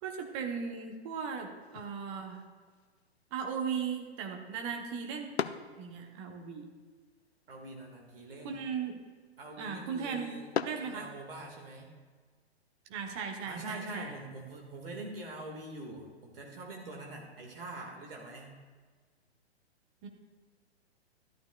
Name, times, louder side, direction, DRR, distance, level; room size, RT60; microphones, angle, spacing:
voice 1, 0.0-2.4 3.3-5.3 5.8-6.7 8.4-9.0 9.6-10.3 10.6-11.1 12.9-14.1 20.0-20.1, right 6 dB, 30° right, 3 dB, 1.1 m, -37 dB
sound 1, 1.6-11.7, left 7 dB, 70° left, 0.5 m, -44 dB
voice 2, 7.5-8.6 9.4-10.5 10.8-11.9 13.4-18.6, right 2 dB, 55° right, 0 dB, 1.9 m, -44 dB
13.0 x 11.5 x 2.4 m, 1.5 s
figure-of-eight pair, 115°, 33 cm